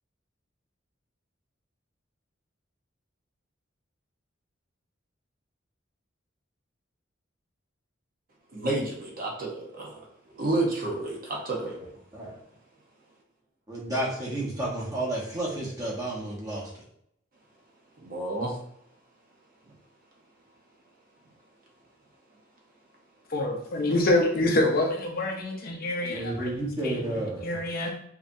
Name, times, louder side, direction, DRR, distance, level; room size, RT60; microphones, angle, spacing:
voice 1, 8.5-10.0 10.3-11.8 18.0-18.6, right 2 dB, 45° right, -2 dB, 1.0 m, -30 dB
voice 2, 13.7-16.7 26.1-27.6, right 1 dB, 20° right, -4 dB, 1.2 m, -31 dB
voice 3, 23.3-26.5 26.8-27.9, left 1 dB, 50° left, 1 dB, 0.7 m, -26 dB
4.9 x 2.9 x 2.7 m, 0.71 s
head